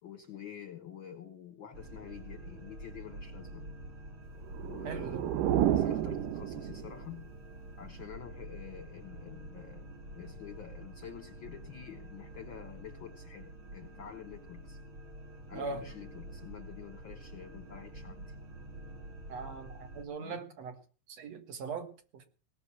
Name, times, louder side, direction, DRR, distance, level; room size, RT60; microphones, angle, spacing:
voice 1, 0.0-3.7 4.6-5.4 5.7-7.2 7.8-9.9 10.1-14.8 15.5-18.3 20.2-20.4, left 9 dB, 55° left, 1.4 m, -48 dB
sound 1, 1.7-20.0, right 1 dB, 40° right, 2.6 m, -47 dB
sound 2, 4.4-7.1, right 11 dB, 90° right, 2.5 m, -31 dB
voice 2, 4.8-5.2 15.5-15.8 19.3-20.8 21.1-22.2, right 4 dB, 60° right, 2.6 m, -40 dB
18.5 x 6.5 x 8.6 m
omnidirectional pair, 3.7 m